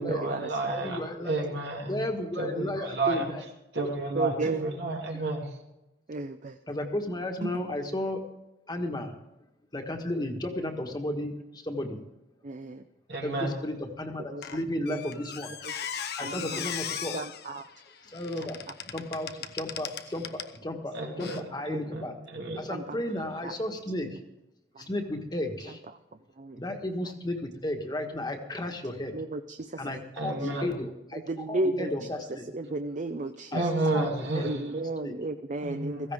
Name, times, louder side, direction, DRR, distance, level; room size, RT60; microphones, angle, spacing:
voice 1, 0.0-2.0 2.3-3.3 3.7-5.6 13.1-13.5 20.9-22.6 30.1-30.8 33.5-34.7 35.6-36.1, right 2 dB, 75° right, 0 dB, 2.6 m, -31 dB
voice 2, 0.7-1.4 1.9-3.4 6.7-8.2 8.7-9.1 9.7-12.0 13.2-15.5 16.2-17.2 18.1-18.6 18.9-22.1 22.6-24.2 24.8-25.8 26.6-29.1 29.8-32.5 33.5-33.6 33.9-34.1 34.4-34.5 35.0-35.1 36.0-36.1, left 1 dB, 25° left, 4 dB, 1.4 m, -33 dB
voice 3, 4.2-4.7 6.1-6.6 7.4-7.5 12.4-12.8 14.3-14.4 14.9-15.0 15.6-15.7 16.2-16.7 17.1-17.6 22.7-23.0 23.4-23.5 24.8-24.9 26.4-26.6 29.1-30.0 31.1-31.9 32.5-33.6 34.4-36.1, right 2 dB, 45° right, 8 dB, 0.6 m, -33 dB
Squeak, 14.4-20.6 21.2-21.4, left 8 dB, 65° left, 0.8 m, -38 dB
16.0 x 15.0 x 3.5 m, 0.94 s
head